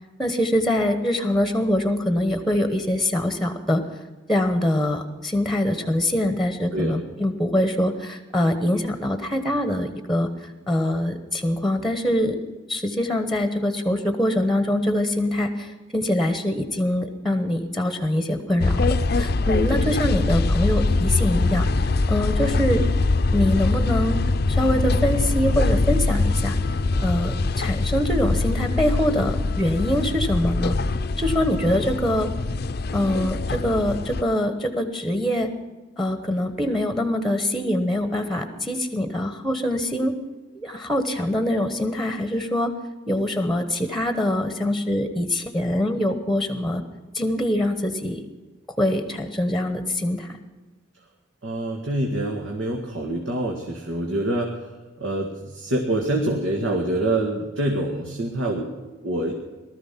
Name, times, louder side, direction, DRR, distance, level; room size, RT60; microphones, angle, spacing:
voice 1, 0.2-3.8 4.3-12.4 12.7-21.7 22.1-22.8 23.3-24.2 24.5-26.6 27.0-30.8 31.2-32.3 32.9-35.5 36.0-40.1 40.5-42.7 43.1-46.8 47.1-48.2 48.7-50.4, left 1 dB, ahead, 9 dB, 1.1 m, -24 dB
sound 1, 18.6-34.2, left 3 dB, 55° left, 0.5 m, -23 dB
voice 2, 51.4-54.5 55.0-59.3, right 1 dB, 85° right, 1 dB, 1.9 m, -26 dB
18.5 x 13.0 x 5.8 m, 1.2 s
head